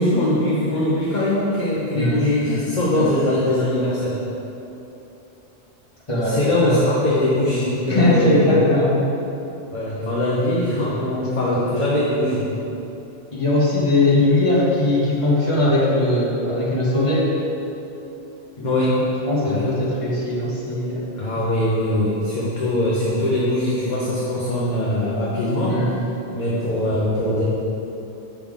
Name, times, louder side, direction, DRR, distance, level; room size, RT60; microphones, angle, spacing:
voice 1, 0.0-4.2 6.2-8.7 9.7-12.5 18.6-19.1 19.5-19.7 21.2-25.8 26.3-27.4, left 1 dB, 40° left, -7 dB, 1.1 m, -21 dB
voice 2, 1.9-2.7 3.0-3.1 6.1-6.8 7.9-9.0 13.3-17.3 18.6-18.8 19.3-21.0 25.7-26.0, left 1 dB, 25° left, -7 dB, 1.6 m, -20 dB
8.5 x 5.9 x 3.7 m, 3.0 s
omnidirectional pair, 1.3 m